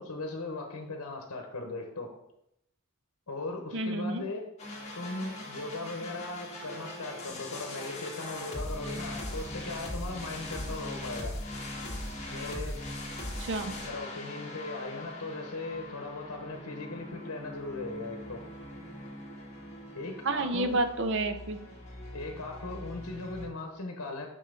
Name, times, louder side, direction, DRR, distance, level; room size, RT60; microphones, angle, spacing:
voice 1, 0.0-2.1 3.3-4.4 5.0-11.3 12.3-12.8 13.8-18.4 19.9-20.8 22.1-24.3, left 2 dB, 70° left, 3 dB, 1.0 m, -38 dB
voice 2, 3.7-4.2 13.4-13.7 20.2-21.6, right 2 dB, 55° right, 9 dB, 0.6 m, -29 dB
sound 1, 4.6-23.5, left 1 dB, 30° left, 1.4 m, -41 dB
6.3 x 5.5 x 3.8 m, 0.80 s
head